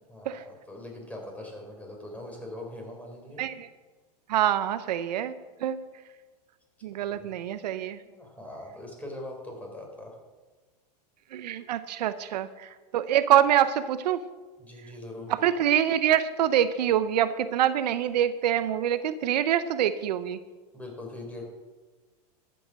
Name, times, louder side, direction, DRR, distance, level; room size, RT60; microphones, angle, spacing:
voice 1, 0.1-3.4 7.1-7.3 7.9-10.2 14.6-15.3 20.7-21.4, left 1 dB, 5° left, 1 dB, 4.1 m, -41 dB
voice 2, 4.3-5.3 5.6-5.8 6.8-8.0 11.3-14.2 15.3-20.4, right 10 dB, 80° right, 13 dB, 0.7 m, -25 dB
13.0 x 7.8 x 6.4 m, 1.3 s
hypercardioid pair, 105°, 21 cm